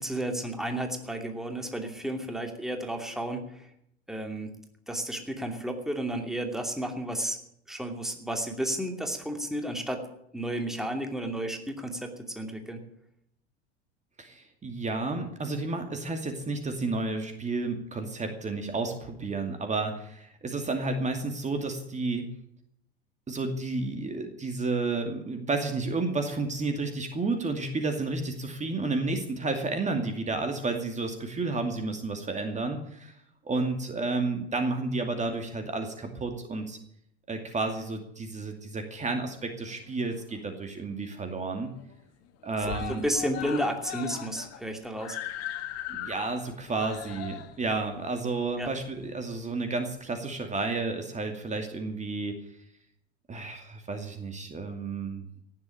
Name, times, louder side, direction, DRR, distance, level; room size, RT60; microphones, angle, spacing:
voice 1, 0.0-3.7 4.1-4.5 4.9-7.4 7.7-10.1 10.3-12.8 42.7-45.2 48.6-48.7, right 1 dB, ahead, 4 dB, 2.6 m, -32 dB
voice 2, 14.2-22.3 23.3-33.2 33.4-36.8 37.3-41.7 42.4-43.0 45.9-52.4 53.3-55.2, right 3 dB, 20° right, 5 dB, 2.4 m, -31 dB
Screaming, 39.7-40.6 41.0-41.1 41.4-41.5 41.8-42.3 42.6-49.4 50.2-50.3, left 11 dB, 50° left, 1.7 m, -40 dB
17.5 x 7.8 x 10.0 m, 0.74 s
figure-of-eight pair, 75°, 32 cm